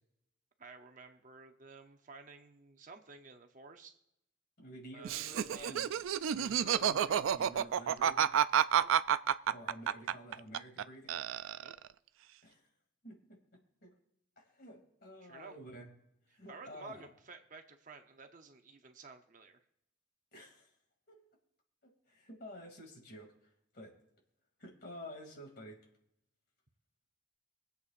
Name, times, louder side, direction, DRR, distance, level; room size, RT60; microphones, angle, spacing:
voice 1, 0.6-3.9 4.9-5.9 6.5-6.8 8.7-8.9 11.6-11.8 15.2-15.6 16.3-19.6, right 4 dB, 40° right, 5 dB, 0.8 m, -53 dB
voice 2, 4.6-5.9 6.3-8.3 9.5-11.1 12.4-12.7 13.0-13.4 13.8-13.9 14.4-15.9 16.3-17.0 20.3-20.7 21.1-21.3 21.8-23.3 23.7-23.9 24.6-25.8, equal, 50° left, 1 dB, 2.7 m, -50 dB
Laughter, 5.0-10.8 11.1-11.9, right 9 dB, 80° right, 0.3 m, -30 dB
24.0 x 8.2 x 2.6 m, 0.81 s
head